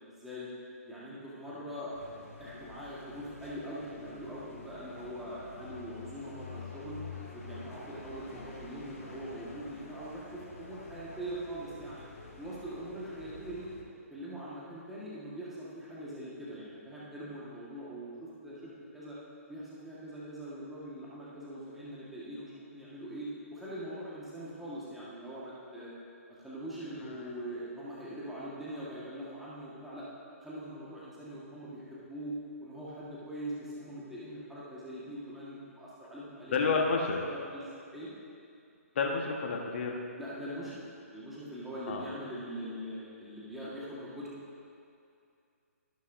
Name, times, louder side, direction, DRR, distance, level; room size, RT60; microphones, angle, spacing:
voice 1, 0.2-0.5 0.8-7.0 7.3-12.0 12.4-13.7 14.1-19.2 19.5-25.9 26.4-30.1 30.4-36.6 37.3-37.7 37.9-38.1 40.2-40.8 41.1-44.3, right 1 dB, 5° right, -9 dB, 1.6 m, -42 dB
sound 1, 1.9-13.8, left 3 dB, 80° left, 2.3 m, -48 dB
voice 2, 36.5-37.2 38.9-40.0 41.9-42.0, left 4 dB, 50° left, 1 dB, 1.3 m, -29 dB
13.0 x 11.0 x 2.7 m, 2.5 s
figure-of-eight pair, 135°, 8 cm